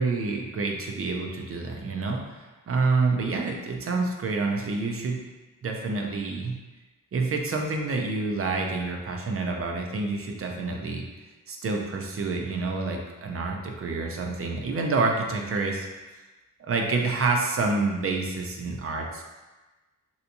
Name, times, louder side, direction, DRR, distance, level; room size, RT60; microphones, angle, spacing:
voice 1, 0.0-5.2 5.6-6.5 7.1-11.1 11.5-15.9 16.6-19.2, right 3 dB, 45° right, 1 dB, 0.4 m, -28 dB
3.4 x 2.7 x 2.8 m, 1.2 s
wide cardioid pair, 160°, 33 cm